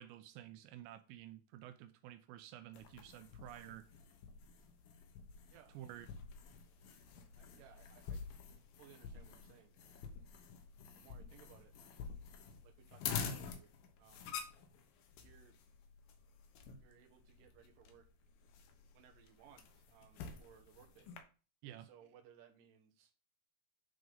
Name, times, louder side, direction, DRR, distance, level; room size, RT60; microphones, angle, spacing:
voice 1, 0.0-3.9 5.7-6.1 21.6-21.9, right 12 dB, 85° right, 2.9 m, -52 dB
sound 1, 2.7-21.2, left 6 dB, 70° left, 2.4 m, -48 dB
voice 2, 5.5-6.0 7.4-8.3 8.8-10.1 11.0-11.7 12.6-13.7 14.0-14.3 15.2-15.6 16.8-18.1 18.9-21.1 21.6-23.1, right 9 dB, 65° right, 2.5 m, -63 dB
9.9 x 4.7 x 3.9 m
omnidirectional pair, 5.1 m